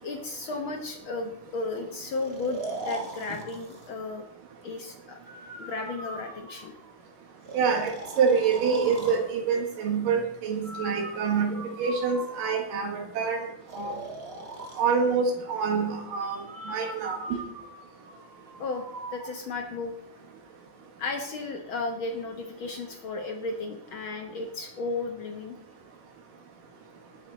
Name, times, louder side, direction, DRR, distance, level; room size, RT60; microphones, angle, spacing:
voice 1, 0.0-4.2 4.6-5.2 5.6-6.8 16.3-16.8 18.6-20.0 21.0-25.6, left 3 dB, 75° left, 3 dB, 1.1 m, -34 dB
Breathing, 2.1-3.9 5.2-6.9 7.4-9.2 10.6-12.9 13.7-14.8 16.5-19.3, right 2 dB, 30° right, 1.0 m, -40 dB
voice 2, 7.5-13.5 13.7-14.0 14.8-17.4, right 5 dB, 85° right, 2 dB, 3.4 m, -26 dB
20.0 x 7.8 x 4.2 m, 0.76 s
omnidirectional pair, 3.8 m